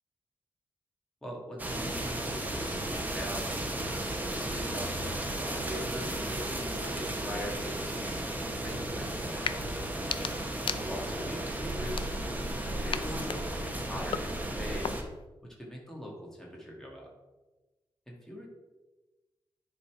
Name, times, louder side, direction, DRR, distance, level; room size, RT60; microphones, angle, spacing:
voice 1, 1.2-9.9 10.6-15.1 15.4-17.1 18.1-18.5, equal, 5° left, -3 dB, 2.1 m, -42 dB
sound 1, 1.6-15.0, right 1 dB, 20° right, 1.0 m, -34 dB
sound 2, 9.4-9.6 9.9-11.3 11.8-12.5 12.9-15.3, left 7 dB, 75° left, 0.4 m, -38 dB
9.9 x 4.2 x 4.9 m, 1.1 s
wide cardioid pair, 150°, 9 cm